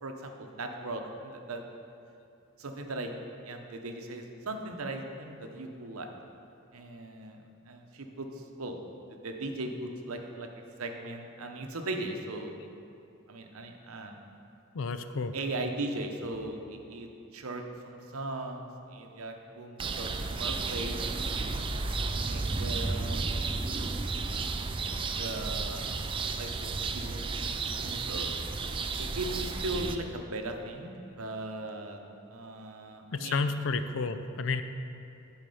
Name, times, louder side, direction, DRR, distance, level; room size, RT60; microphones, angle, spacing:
voice 1, 0.0-1.6 2.6-3.1 3.4-6.1 6.7-8.8 9.1-10.5 10.8-12.6 13.3-14.2 15.3-20.1 20.4-21.0 21.2-21.6 22.2-23.3 25.2-26.0 26.3-26.7 26.9-28.3 29.0-32.0 32.3-33.5, right 2 dB, 90° right, 4 dB, 0.8 m, -38 dB
voice 2, 14.7-15.3 33.1-34.6, left 4 dB, 65° left, 10 dB, 0.4 m, -31 dB
sound 1, 19.8-30.0, right 4 dB, 25° right, 0.3 m, -32 dB
10.5 x 4.8 x 5.5 m, 2.6 s
head